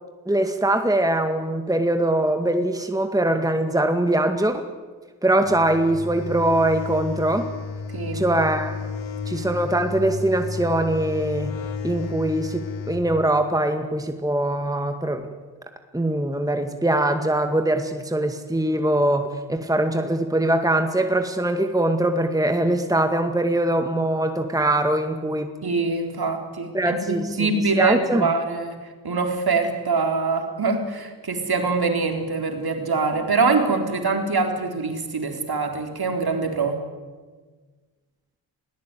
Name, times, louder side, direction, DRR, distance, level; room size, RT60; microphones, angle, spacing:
voice 1, 0.3-4.6 5.2-7.5 8.1-8.8 9.3-11.5 11.8-15.2 15.9-25.5 26.7-27.3 27.8-28.3, right 1 dB, 5° right, 6 dB, 2.0 m, -22 dB
sound 1, 5.4-13.0, left 4 dB, 70° left, 2.7 m, -32 dB
voice 2, 7.9-8.5 25.6-36.8, right 4 dB, 50° right, 4 dB, 4.2 m, -24 dB
20.5 x 18.0 x 9.3 m, 1.4 s
supercardioid pair, 50°, 47 cm